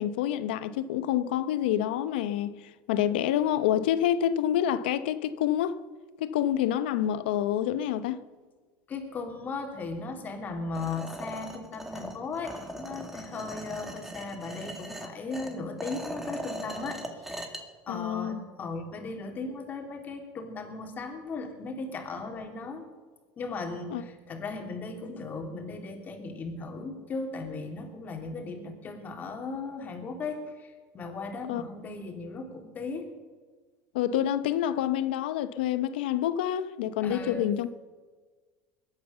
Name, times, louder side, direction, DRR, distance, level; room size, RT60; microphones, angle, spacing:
voice 1, 0.0-5.8 6.2-8.2 17.9-18.4 23.9-24.0 31.5-31.6 33.9-37.8, left 11 dB, 85° left, 0.9 m, -27 dB
voice 2, 8.9-17.6 17.9-22.8 23.4-33.1 37.0-37.5, left 3 dB, 35° left, 3.3 m, -37 dB
sound 1, 10.7-17.6, equal, 5° right, 2.2 m, -40 dB
21.5 x 9.5 x 6.9 m
supercardioid pair, 110°, 5 cm